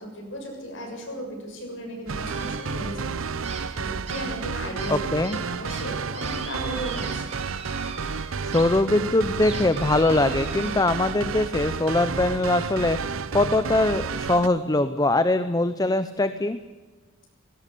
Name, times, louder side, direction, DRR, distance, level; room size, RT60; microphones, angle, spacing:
voice 1, 0.0-3.1 3.7-7.3, equal, 65° left, 1 dB, 6.8 m, -36 dB
sound 1, 2.1-14.5, right 5 dB, 85° right, 0.7 m, -31 dB
sound 2, 2.2-3.1 3.4-8.6 9.0-11.0, right 4 dB, 35° right, 3.0 m, -41 dB
voice 2, 4.9-5.4 8.4-13.0 13.3-16.6, left 2 dB, 20° left, 11 dB, 0.6 m, -22 dB
18.5 x 17.0 x 8.4 m, 1.3 s
head